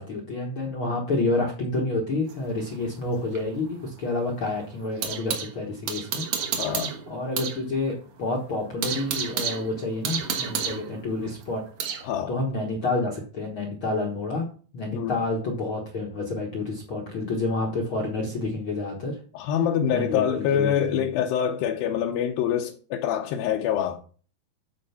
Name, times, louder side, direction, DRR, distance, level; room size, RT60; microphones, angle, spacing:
voice 1, 0.0-6.2 6.5-6.8 7.1-14.5 14.7-19.2 19.9-21.2, left 2 dB, 60° left, 1.3 m, -29 dB
sound 1, 2.3-5.5 5.9-7.6 7.9-8.0 8.4-12.1, right 7 dB, 60° right, 2.4 m, -31 dB
voice 2, 6.6-6.9 12.0-12.3 14.9-15.2 17.2-17.3 19.3-24.0, left 9 dB, 75° left, 2.4 m, -25 dB
11.5 x 4.5 x 5.7 m
omnidirectional pair, 4.5 m